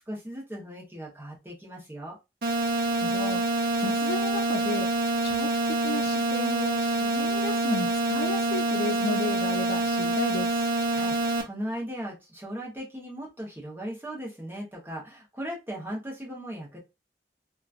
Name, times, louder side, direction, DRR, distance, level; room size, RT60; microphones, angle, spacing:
voice 1, 0.1-2.2 10.9-16.8, equal, 10° right, 0.9 m, -38 dB
sound 1, 2.4-11.4, right 2 dB, 60° right, 0.7 m, -26 dB
voice 2, 2.7-3.4 3.8-4.9 5.2-5.5 5.8-10.5, left 3 dB, 65° left, 0.5 m, -33 dB
2.9 x 2.3 x 2.4 m
head